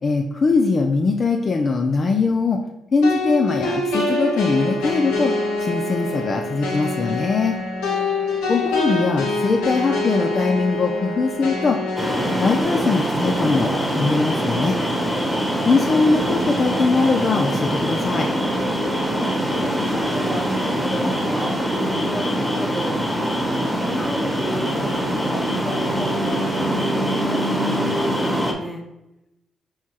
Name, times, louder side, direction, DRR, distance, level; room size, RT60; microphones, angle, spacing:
voice 1, 0.0-2.6 2.9-5.3 5.6-7.5 8.5-11.8 12.4-14.8 15.6-18.3, left 4 dB, 50° left, 3 dB, 0.4 m, -21 dB
sound 1, 3.0-12.6, left 2 dB, 90° left, 0.8 m, -25 dB
voice 2, 7.9-8.3 19.0-23.1 23.8-28.8, left 1 dB, 15° left, 2 dB, 1.0 m, -34 dB
sound 2, 12.0-28.5, equal, 5° right, 1.1 m, -23 dB
4.4 x 2.3 x 4.4 m, 0.91 s
supercardioid pair, 60°, 0 cm